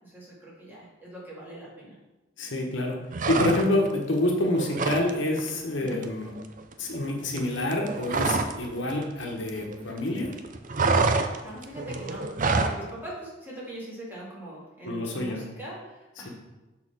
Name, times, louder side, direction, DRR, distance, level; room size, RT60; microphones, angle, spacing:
voice 1, 0.0-2.0 5.8-6.0 11.2-16.3, right 1 dB, 10° right, -6 dB, 2.3 m, -41 dB
voice 2, 2.4-3.0 3.3-6.3 6.8-10.3 14.8-15.4, left 1 dB, 85° left, 1 dB, 1.2 m, -27 dB
sound 1, 3.1-3.9 4.3-5.1 5.4-5.6 5.9-8.6 8.9-10.0 10.2-12.8, right 4 dB, 45° right, 0.5 m, -27 dB
6.6 x 4.1 x 5.8 m, 1.1 s
head